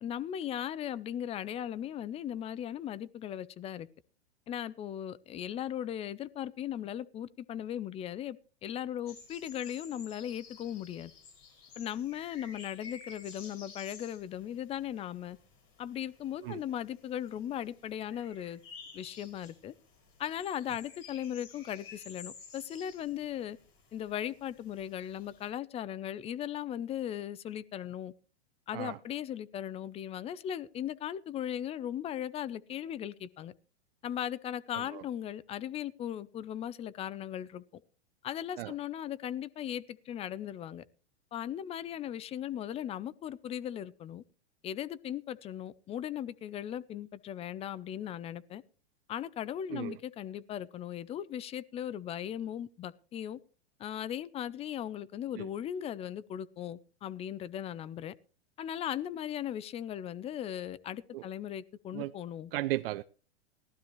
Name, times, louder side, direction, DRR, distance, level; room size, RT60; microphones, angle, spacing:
voice 1, 0.0-3.9 4.5-11.1 11.8-15.4 15.8-18.6 18.9-19.7 20.2-23.6 23.9-28.1 28.7-33.5 34.0-37.6 38.2-40.8 41.3-44.2 44.6-48.6 49.1-53.4 53.8-58.1 58.6-62.5, left 10 dB, 20° left, 0.5 m, -38 dB
Dawn chorus, 9.1-25.5, left 5 dB, 40° left, 5.9 m, -53 dB
voice 2, 62.5-63.0, right 17 dB, 60° right, 0.6 m, -35 dB
18.5 x 12.5 x 3.1 m
hypercardioid pair, 125°, 33 cm